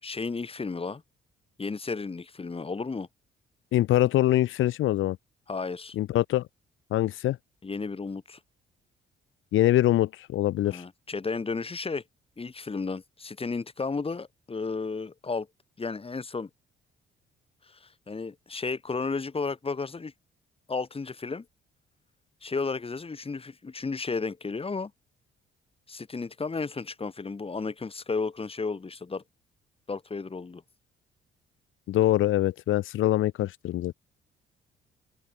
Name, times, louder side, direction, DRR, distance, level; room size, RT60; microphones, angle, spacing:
voice 1, 0.0-1.0 1.6-3.1 5.5-6.0 7.6-8.4 10.7-12.0 12.4-15.5 15.8-16.5 17.7-20.1 20.7-21.4 22.4-24.9 25.9-29.2 29.9-30.6, left 4 dB, 30° left, 6.2 m, -33 dB
voice 2, 3.7-5.2 6.0-6.4 6.9-7.4 9.5-10.8 31.9-33.9, left 14 dB, 85° left, 3.2 m, -24 dB
open air
cardioid pair, 90°, 20 cm